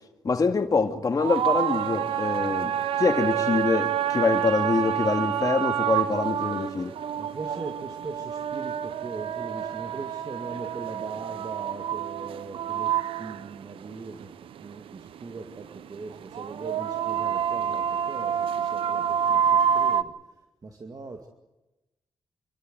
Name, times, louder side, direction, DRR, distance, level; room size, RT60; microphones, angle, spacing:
voice 1, 0.2-6.9, left 4 dB, 40° left, 2.1 m, -25 dB
sound 1, 1.2-20.0, right 9 dB, 90° right, 0.7 m, -28 dB
voice 2, 7.2-14.3 14.6-21.3, right 3 dB, 45° right, 2.2 m, -40 dB
27.5 x 13.0 x 9.5 m
cardioid pair, 80°, 9 cm